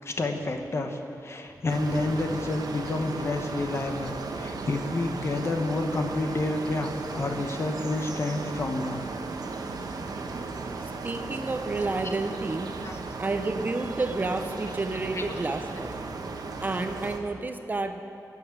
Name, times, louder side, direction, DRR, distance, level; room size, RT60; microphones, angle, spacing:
voice 1, 0.0-9.0 9.8-9.9 12.0-12.1 12.8-13.0 15.1-15.2, left 2 dB, 40° left, 5 dB, 1.0 m, -29 dB
sound 1, 1.7-17.2, right 3 dB, 70° right, 1.0 m, -36 dB
voice 2, 11.0-12.7 13.2-16.0 16.6-18.0, right 3 dB, 25° right, 7 dB, 0.6 m, -30 dB
12.5 x 7.3 x 9.6 m, 2.7 s
wide cardioid pair, 175°, 7 cm